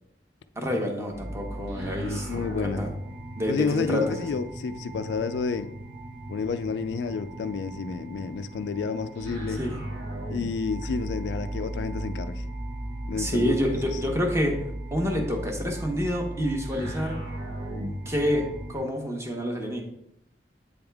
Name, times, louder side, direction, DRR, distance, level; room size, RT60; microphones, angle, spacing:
voice 1, 0.6-2.9 3.4-4.2 9.5-9.8 13.1-14.6 14.9-17.3 18.1-19.8, equal, 15° right, 2 dB, 0.9 m, -28 dB
sound 1, 1.1-18.8, right 1 dB, 80° right, 1.0 m, -36 dB
voice 2, 2.0-2.8 3.5-5.7 6.3-9.6 10.3-12.4 13.1-13.6, left 5 dB, 75° left, 11 dB, 0.3 m, -30 dB
7.8 x 3.5 x 3.4 m, 0.78 s
head